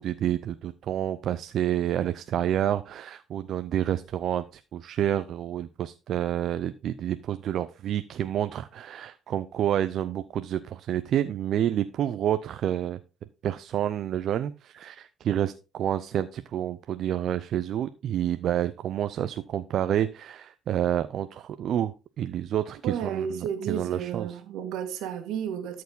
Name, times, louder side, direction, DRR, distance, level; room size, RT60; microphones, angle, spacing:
voice 1, 0.0-13.0 13.4-24.3, right 11 dB, 65° right, 0.5 m, -29 dB
voice 2, 22.8-25.8, right 8 dB, 80° right, 1.8 m, -32 dB
13.0 x 4.7 x 4.0 m
supercardioid pair, 80°, 0 cm